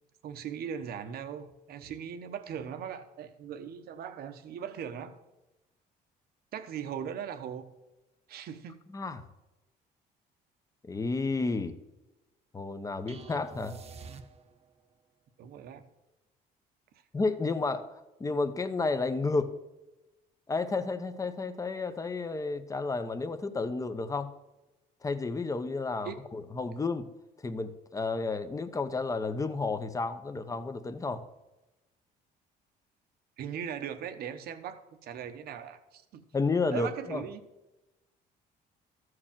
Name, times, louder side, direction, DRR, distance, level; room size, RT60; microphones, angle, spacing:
voice 1, 0.2-5.1 6.5-7.7 8.3-8.8 15.4-15.8 26.0-26.2 33.4-36.2 36.7-37.5, right 8 dB, 65° right, 9 dB, 1.0 m, -39 dB
voice 2, 8.9-9.2 10.9-11.8 12.5-13.8 17.1-19.5 20.5-24.3 25.0-27.1 27.4-31.2 36.3-37.2, left 3 dB, 20° left, 10 dB, 0.8 m, -31 dB
sound 1, 13.1-14.8, right 5 dB, 40° right, 0.9 m, -47 dB
13.0 x 4.8 x 7.4 m, 1.0 s
cardioid pair, 110°, 17 cm